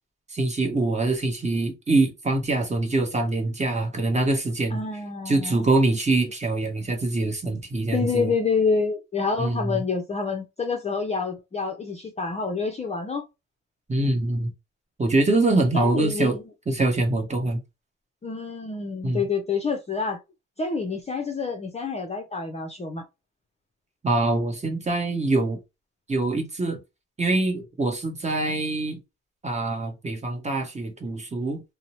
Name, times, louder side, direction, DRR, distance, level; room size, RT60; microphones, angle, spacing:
voice 1, 0.3-4.8 5.3-8.3 9.4-9.8 13.9-14.5 15.0-16.4 16.7-17.6 19.0-19.2 24.0-25.6 26.1-26.8 27.2-29.0 29.4-31.6, right 2 dB, 25° right, 0.9 m, -24 dB
voice 2, 4.7-5.6 7.9-13.2 15.7-16.4 18.2-20.2 20.6-23.0, left 4 dB, 20° left, 0.5 m, -27 dB
2.6 x 2.0 x 2.9 m
cardioid pair, 90°, 30 cm